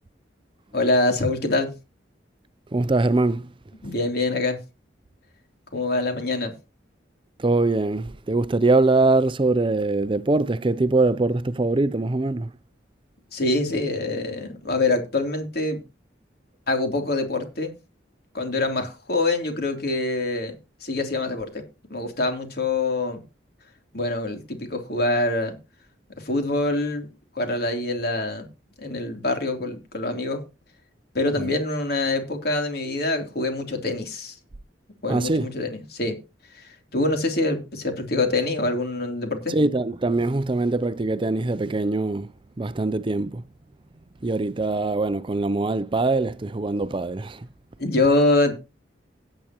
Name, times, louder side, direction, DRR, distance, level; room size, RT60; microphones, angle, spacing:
voice 1, 0.7-1.7 3.8-4.6 5.7-6.5 13.3-15.8 16.7-17.7 18.3-20.5 20.8-21.6 21.9-23.2 23.9-25.5 26.2-27.1 27.3-28.5 28.8-30.4 31.1-34.3 35.0-36.2 36.5-39.6 47.8-48.5, left 2 dB, 60° left, 3.3 m, -25 dB
voice 2, 2.7-3.5 7.4-12.5 31.4-31.5 35.1-35.5 39.5-42.3 42.6-43.4 44.2-47.5, right 2 dB, 30° right, 0.5 m, -23 dB
16.5 x 8.7 x 3.0 m
head